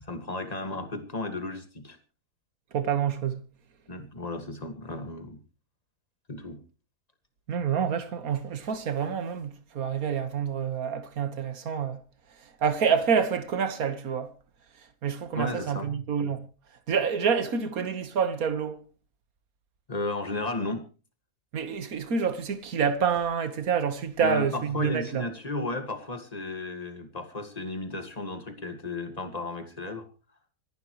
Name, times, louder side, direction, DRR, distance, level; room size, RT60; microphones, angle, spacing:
voice 1, 0.0-2.0 3.9-5.4 6.3-6.6 15.4-15.9 19.9-20.8 24.2-30.0, left 2 dB, 25° left, 2.0 m, -34 dB
voice 2, 2.7-3.4 7.5-12.0 12.6-14.3 15.0-16.5 16.9-18.8 21.5-25.2, right 7 dB, 65° right, 1.8 m, -27 dB
25.5 x 11.5 x 3.1 m
omnidirectional pair, 1.7 m